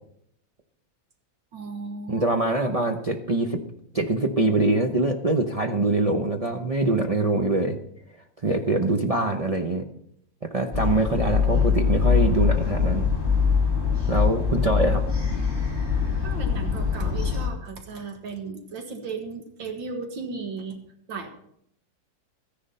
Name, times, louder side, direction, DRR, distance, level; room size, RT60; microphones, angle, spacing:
voice 1, 1.5-2.3 16.2-20.8 21.1-21.3, right 4 dB, 85° right, 5 dB, 2.2 m, -35 dB
voice 2, 2.1-3.6 3.9-7.8 8.4-9.8 10.4-13.1 14.1-15.0, right 2 dB, 50° right, 3 dB, 0.4 m, -24 dB
sound 1, 10.7-17.5, left 6 dB, 15° right, 2.6 m, -23 dB
14.0 x 10.5 x 5.5 m, 0.71 s
omnidirectional pair, 2.0 m